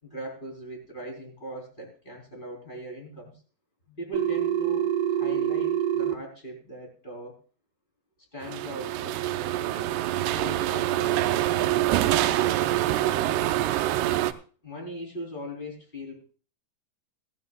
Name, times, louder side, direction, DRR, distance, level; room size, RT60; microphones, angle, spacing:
voice 1, 0.0-3.3 3.9-7.4 8.3-10.0 10.3-11.8 14.6-16.2, equal, 15° left, 1 dB, 3.2 m, -40 dB
Telephone, 4.1-6.1, right 11 dB, 70° right, 2.4 m, -26 dB
sound 1, 8.4-14.3, right 14 dB, 90° right, 2.8 m, -25 dB
18.0 x 13.5 x 2.3 m, 0.38 s
omnidirectional pair, 4.7 m